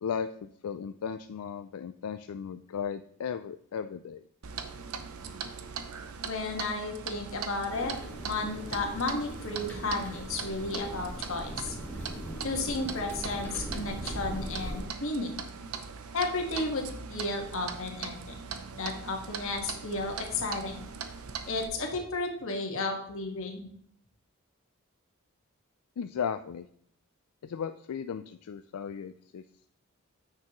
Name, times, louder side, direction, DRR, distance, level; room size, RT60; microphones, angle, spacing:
voice 1, 0.0-4.2 26.0-26.7 27.4-29.4, left 7 dB, 90° left, 9 dB, 0.4 m, -36 dB
Clock, 4.4-21.7, right 6 dB, 85° right, 0.7 m, -41 dB
voice 2, 6.2-7.9 8.2-11.7 12.4-15.4 16.1-18.4 18.7-20.9 21.5-23.7, left 2 dB, 65° left, 2 dB, 1.7 m, -33 dB
sound 1, 7.7-14.8, right 1 dB, 10° left, 1.8 m, -40 dB
9.4 x 6.7 x 3.1 m, 0.65 s
head